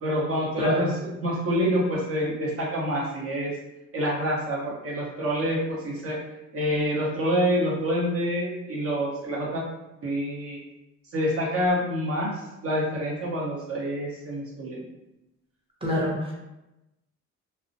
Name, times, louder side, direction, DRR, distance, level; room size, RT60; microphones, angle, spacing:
voice 1, 0.0-3.5 3.9-6.2 6.5-9.6 10.0-10.6 11.1-12.3 12.6-14.8, equal, 50° right, -4 dB, 0.9 m, -27 dB
voice 2, 0.6-0.9 15.8-16.3, equal, 20° right, -5 dB, 0.8 m, -26 dB
2.3 x 2.0 x 2.6 m, 0.94 s
cardioid pair, 90°, 30 cm